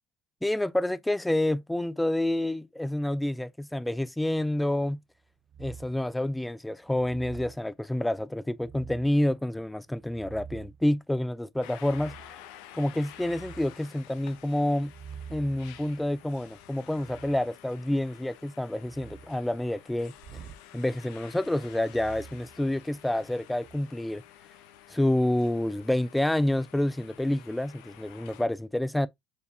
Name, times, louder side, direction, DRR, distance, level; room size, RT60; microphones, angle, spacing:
voice 1, 0.4-5.0 5.6-12.1 12.7-14.9 15.3-20.1 20.7-24.2 24.9-29.1, left 1 dB, 5° left, 0.3 m, -28 dB
sound 1, 5.5-6.1 6.9-7.6 8.5-9.2 9.9-10.9 11.8-12.4 12.9-13.8 14.7-17.5 18.8-19.3 20.2-20.7 21.8-23.1 23.5-23.8, right 7 dB, 50° right, 0.5 m, -47 dB
sound 2, 11.6-28.4, left 12 dB, 75° left, 0.6 m, -51 dB
4.7 x 3.3 x 2.6 m
supercardioid pair, 90°, 0 cm